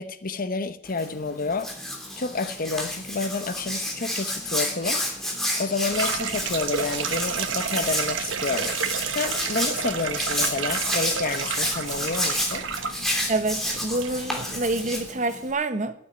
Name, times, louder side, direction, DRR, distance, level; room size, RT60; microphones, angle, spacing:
voice 1, 0.0-1.7 2.2-5.0 5.6-8.7 9.1-12.7, left 4 dB, 45° left, 0.9 m, -29 dB
Hands, 0.9-15.5, left 1 dB, ahead, 3.0 m, -30 dB
sound 1, 5.9-15.1, right 6 dB, 75° right, 1.2 m, -31 dB
voice 2, 13.3-15.9, right 2 dB, 40° right, 1.1 m, -27 dB
13.0 x 8.9 x 9.3 m
head